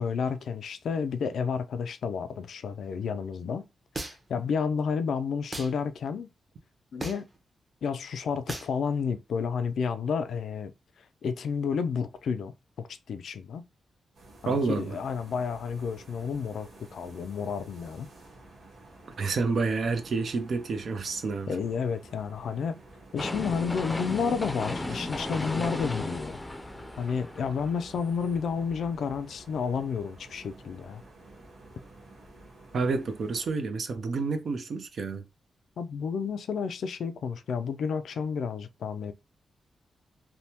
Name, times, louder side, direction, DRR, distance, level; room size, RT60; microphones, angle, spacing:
voice 1, 0.0-3.6 4.0-6.3 6.9-7.2 7.8-10.7 11.2-12.5 12.8-13.6 14.4-18.1 21.5-22.8 23.1-26.4 27.0-31.0 35.8-39.1, left 6 dB, 80° left, 0.3 m, -31 dB
sound 1, 3.9-4.4 5.5-5.7 7.0-7.4 8.5-8.8, right 2 dB, 30° right, 1.0 m, -36 dB
sound 2, 14.1-33.5, right 2 dB, 85° right, 1.2 m, -52 dB
voice 2, 14.5-15.0 19.2-21.5 32.7-35.2, right 4 dB, 65° right, 0.6 m, -29 dB
sound 3, 23.2-29.2 29.6-29.7, left 1 dB, 20° left, 0.5 m, -35 dB
3.2 x 2.2 x 2.8 m
cardioid pair, 70°, 0 cm